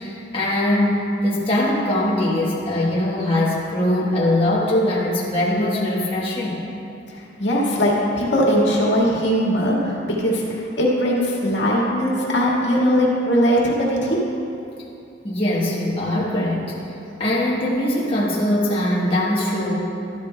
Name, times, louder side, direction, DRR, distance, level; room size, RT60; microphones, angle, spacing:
voice 1, 0.0-6.6 15.2-16.7 17.2-19.8, left 1 dB, 30° left, -6 dB, 1.2 m, -21 dB
voice 2, 7.1-14.2, equal, 70° left, -4 dB, 1.8 m, -20 dB
12.5 x 12.0 x 2.2 m, 2.7 s
head